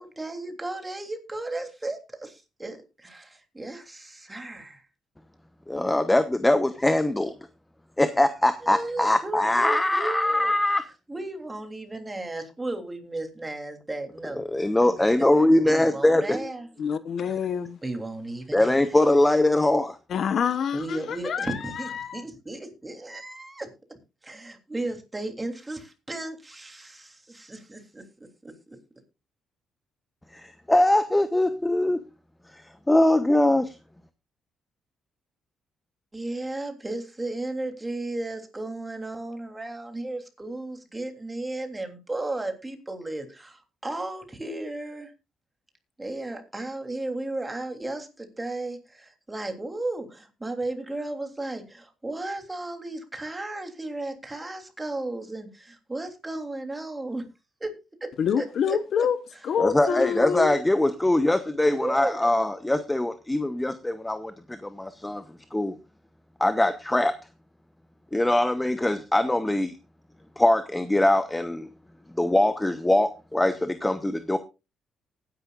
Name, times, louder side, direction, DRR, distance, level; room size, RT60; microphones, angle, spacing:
voice 1, 0.0-4.8 8.6-10.5 11.1-14.4 15.2-15.3 15.6-16.7 17.8-18.8 20.7-23.7 24.2-28.0 28.4-28.8 36.1-45.1 46.0-57.2 57.6-57.7 58.0-58.1 58.4-59.1 59.9-60.1 61.6-62.2, right 2 dB, 15° right, 3.1 m, -34 dB
voice 2, 5.7-7.3 8.0-10.8 14.4-16.4 18.5-20.0 30.3-32.0 32.9-33.8 59.6-65.2 65.5-65.8 66.4-67.2 68.1-69.8 70.4-71.7 72.2-74.4, left 1 dB, 10° left, 0.9 m, -22 dB
voice 3, 16.8-17.8 20.1-21.6 21.9-22.2 58.2-59.2 59.4-60.6, left 7 dB, 60° left, 1.0 m, -26 dB
19.5 x 10.5 x 2.4 m
cardioid pair, 90°, 0 cm